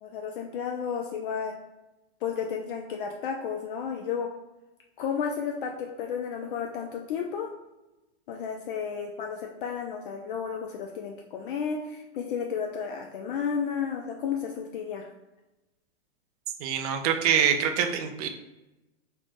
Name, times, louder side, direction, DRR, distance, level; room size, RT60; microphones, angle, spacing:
voice 1, 0.0-1.5 2.2-4.3 5.0-7.5 8.3-15.1, left 7 dB, 50° left, 2 dB, 0.4 m, -32 dB
voice 2, 16.6-18.3, right 8 dB, 35° right, 6 dB, 0.4 m, -25 dB
3.2 x 2.5 x 3.5 m, 1.0 s
hypercardioid pair, 125°, 35 cm